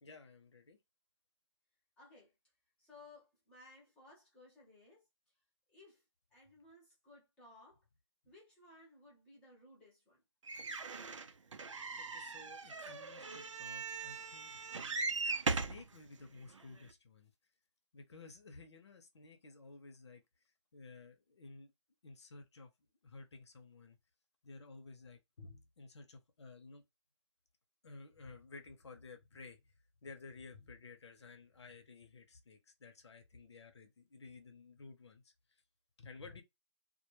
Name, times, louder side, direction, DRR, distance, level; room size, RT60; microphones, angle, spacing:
voice 1, 0.0-0.8 12.0-14.5 15.5-17.3 17.9-20.2 20.7-21.7 22.0-22.7 23.0-24.0 24.4-26.8 27.8-29.6 30.0-35.3 36.0-36.4, left 3 dB, 65° left, 0.7 m, -54 dB
voice 2, 2.0-2.3 2.8-5.0 5.7-6.0 6.3-7.8 8.2-10.2, left 2 dB, 5° left, 0.7 m, -60 dB
sound 1, 10.5-15.8 16.6-16.7 16.9-17.0, right 4 dB, 90° right, 0.5 m, -39 dB
2.2 x 2.1 x 3.0 m
hypercardioid pair, 160°, 15 cm